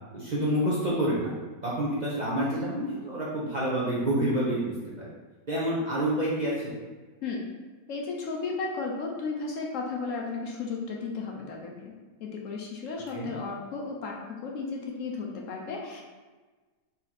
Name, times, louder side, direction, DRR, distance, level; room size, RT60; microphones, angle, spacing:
voice 1, 0.1-1.4 1.6-5.0 5.5-6.8 13.1-13.3, right 1 dB, 40° right, -7 dB, 0.6 m, -28 dB
voice 2, 7.9-11.9 12.2-16.1, left 4 dB, 65° left, 0 dB, 0.9 m, -34 dB
4.1 x 3.0 x 3.9 m, 1.3 s
omnidirectional pair, 1.6 m